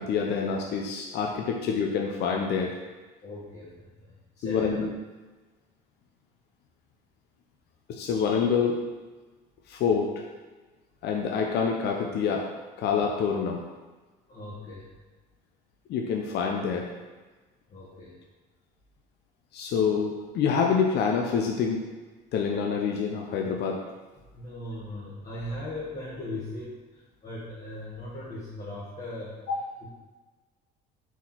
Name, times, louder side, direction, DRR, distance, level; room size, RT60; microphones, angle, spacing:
voice 1, 0.0-2.7 4.4-4.9 7.9-8.8 9.7-10.2 11.0-12.5 12.8-13.6 15.9-16.9 19.5-21.9 22.3-23.8 29.5-29.7, left 6 dB, 60° left, 1 dB, 0.7 m, -26 dB
voice 2, 3.2-4.7 14.3-15.0 17.7-18.2 24.3-29.4 29.8-29.9, left 1 dB, 40° left, -8 dB, 1.8 m, -39 dB
4.8 x 4.2 x 5.7 m, 1.3 s
supercardioid pair, 95°, 19 cm